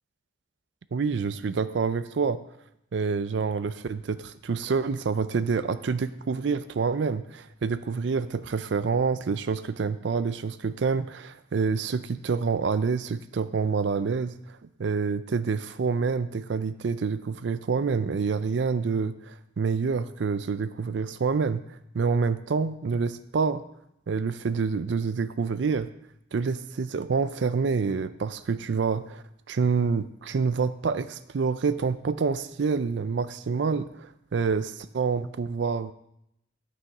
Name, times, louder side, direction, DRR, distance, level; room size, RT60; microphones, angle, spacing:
voice 1, 0.9-2.4 2.9-14.3 14.8-21.6 21.9-23.6 24.1-25.9 26.3-35.9, right 5 dB, 65° right, 13 dB, 0.4 m, -27 dB
10.5 x 6.2 x 4.8 m, 0.79 s
head